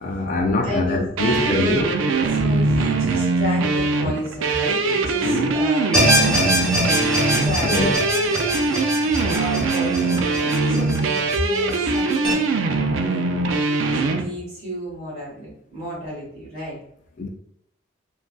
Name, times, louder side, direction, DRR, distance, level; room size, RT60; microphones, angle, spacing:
voice 1, 0.0-1.9 2.2-2.3 5.2-5.5 7.6-8.0 17.2-17.3, left 2 dB, 40° left, 3 dB, 0.3 m, -23 dB
voice 2, 0.6-1.9 2.2-8.1 9.2-12.7 12.9-16.8, equal, 35° right, -5 dB, 1.5 m, -32 dB
sound 1, 1.2-14.2, right 3 dB, 75° right, 0.3 m, -22 dB
sound 2, 5.9-12.3, equal, 5° left, 0.8 m, -24 dB
3.6 x 2.4 x 2.3 m, 0.71 s
head